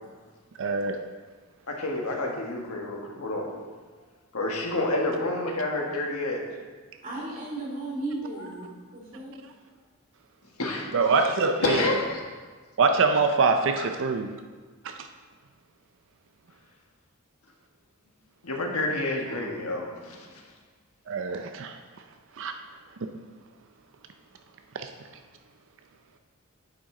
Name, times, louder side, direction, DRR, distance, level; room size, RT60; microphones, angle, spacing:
voice 1, 0.6-1.0 10.9-11.9 12.8-14.4 14.8-15.1 21.1-22.0 22.3-22.5 23.0-23.1 24.7-24.9, right 4 dB, 60° right, 6 dB, 0.5 m, -25 dB
voice 2, 1.7-3.5 4.3-6.4 10.6-10.9 11.6-12.0 18.4-20.3, left 2 dB, 80° left, 0 dB, 1.5 m, -28 dB
voice 3, 7.0-9.3, right 2 dB, 40° right, -4 dB, 2.6 m, -35 dB
9.4 x 7.6 x 3.8 m, 1.4 s
head